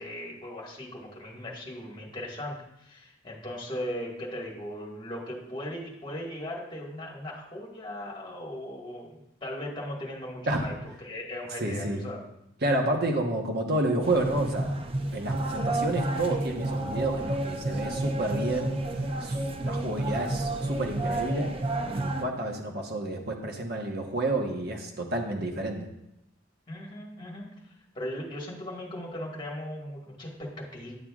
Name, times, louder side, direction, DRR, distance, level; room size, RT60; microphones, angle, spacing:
voice 1, 0.0-10.7 11.0-12.2 26.7-27.5 27.9-30.9, left 1 dB, 25° left, -3 dB, 1.7 m, -38 dB
voice 2, 11.6-12.1 12.6-14.7 15.1-18.7 19.2-21.5 21.9-25.9, right 1 dB, 55° right, 1 dB, 1.1 m, -30 dB
sound 1, 14.0-22.2, right 1 dB, 30° right, 0.5 m, -30 dB
11.0 x 7.6 x 2.4 m, 0.86 s
head